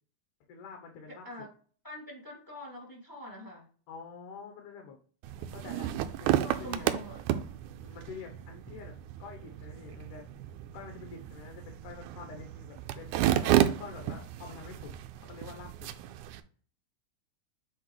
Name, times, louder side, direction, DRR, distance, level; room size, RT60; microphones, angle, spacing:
voice 1, 0.5-1.3 3.9-5.0 5.4-5.9 6.2-6.9 7.8-10.5 10.7-14.9 15.2-15.9, left 5 dB, 85° left, 2 dB, 2.5 m, -47 dB
voice 2, 1.1-1.5 1.8-3.7 6.2-7.2, left 1 dB, 5° left, -3 dB, 2.3 m, -44 dB
sound 1, 5.2-16.4, right 12 dB, 90° right, 2.1 m, -32 dB
8.6 x 4.4 x 3.2 m, 0.43 s
omnidirectional pair, 3.5 m